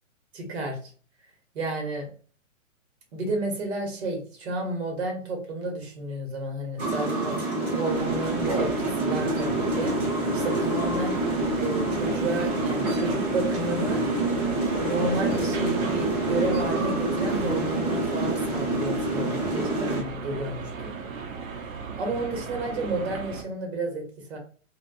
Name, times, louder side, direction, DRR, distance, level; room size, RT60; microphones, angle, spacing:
voice 1, 0.3-0.8 1.5-2.1 3.1-9.9 10.3-11.2 11.6-14.1 14.8-19.4 19.7-20.9 22.0-24.4, right 2 dB, 50° right, 2 dB, 0.9 m, -31 dB
sound 1, 6.8-20.0, right 2 dB, 30° right, 0.7 m, -27 dB
sound 2, 7.9-23.4, right 5 dB, 85° right, 0.7 m, -36 dB
2.5 x 2.2 x 2.2 m, 0.41 s
hypercardioid pair, 170°, 40 cm